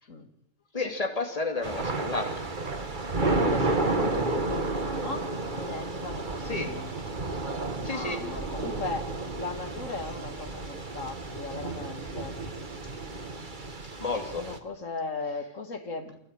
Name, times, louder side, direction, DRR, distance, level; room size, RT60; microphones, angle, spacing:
voice 1, 0.7-2.4 6.5-6.7 7.8-8.2 14.0-14.4, left 3 dB, 30° left, 4 dB, 2.9 m, -31 dB
Thunder / Rain, 1.6-14.6, right 3 dB, 40° right, 1.8 m, -31 dB
voice 2, 3.2-6.9 7.8-12.4 14.2-16.2, left 3 dB, 90° left, 6 dB, 2.6 m, -37 dB
25.5 x 15.5 x 9.0 m, 0.74 s
omnidirectional pair, 1.3 m